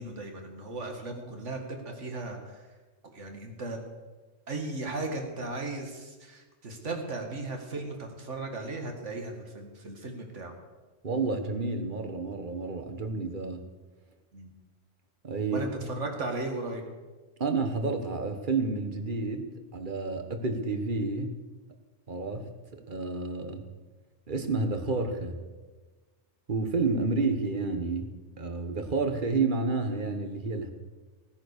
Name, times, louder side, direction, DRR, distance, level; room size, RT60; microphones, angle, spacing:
voice 1, 0.0-2.7 3.1-3.8 4.5-10.5 14.3-14.5 15.4-16.8, right 2 dB, 70° right, 3 dB, 2.3 m, -36 dB
voice 2, 11.0-13.6 15.2-15.6 17.4-21.4 22.1-23.7 24.3-25.4 26.5-30.7, right 3 dB, 40° right, 7 dB, 1.4 m, -30 dB
17.0 x 9.7 x 6.7 m, 1.3 s
omnidirectional pair, 1.3 m